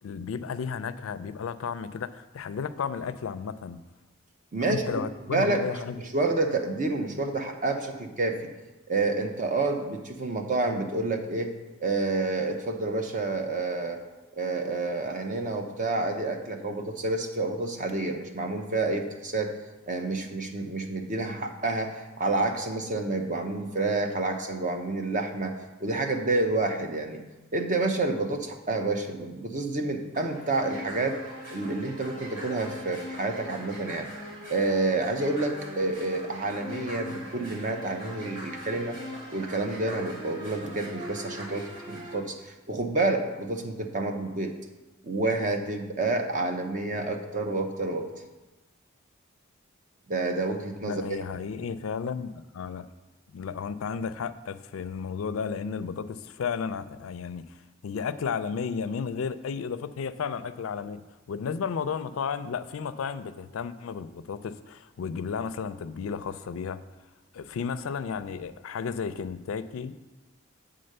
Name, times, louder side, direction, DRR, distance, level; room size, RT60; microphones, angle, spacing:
voice 1, 0.0-3.8 4.7-6.0 50.8-52.9 53.3-57.4 57.8-61.0 61.3-66.8 67.3-69.9, left 6 dB, 90° left, 13 dB, 0.4 m, -33 dB
voice 2, 4.5-4.8 5.3-5.7 6.0-8.5 8.9-11.5 11.8-14.0 14.4-19.5 19.9-25.5 25.8-27.2 27.5-31.2 31.5-34.1 34.5-39.0 39.3-44.5 45.0-48.1 50.1-51.0, right 2 dB, 40° right, 4 dB, 0.7 m, -29 dB
sound 1, 30.1-42.1, equal, 75° right, 2.6 m, -41 dB
7.8 x 3.8 x 6.5 m, 1.1 s
head